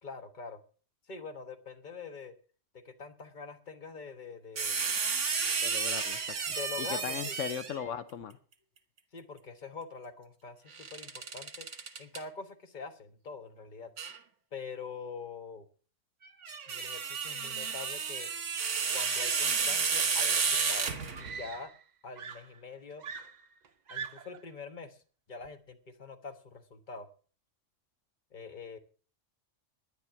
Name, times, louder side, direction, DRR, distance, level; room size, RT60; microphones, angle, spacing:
voice 1, 0.0-0.6 1.1-2.3 2.7-4.8 6.4-7.4 9.1-11.7 12.0-13.9 14.5-15.7 16.7-18.3 18.9-21.7 22.0-23.0 23.9-25.0 25.3-27.1 28.3-28.8, left 4 dB, 40° left, 9 dB, 1.4 m, -44 dB
sound 1, 4.6-7.9 10.7-12.2 14.0-14.2 16.3-21.4, right 5 dB, 75° right, 1.7 m, -32 dB
voice 2, 5.6-8.4, left 8 dB, 85° left, 12 dB, 1.2 m, -38 dB
Screaming, 21.1-21.9 22.2-24.5 25.4-25.7, right 6 dB, 45° right, 0.7 m, -43 dB
10.5 x 10.5 x 7.0 m, 0.40 s
omnidirectional pair, 1.3 m